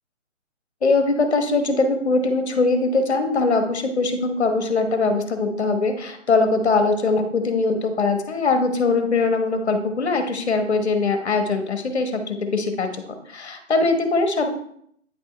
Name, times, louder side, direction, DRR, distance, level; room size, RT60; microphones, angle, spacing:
voice 1, 0.8-13.0 13.3-14.5, left 3 dB, 60° left, 6 dB, 1.2 m, -21 dB
9.1 x 4.3 x 3.3 m, 0.68 s
hypercardioid pair, 175°, 38 cm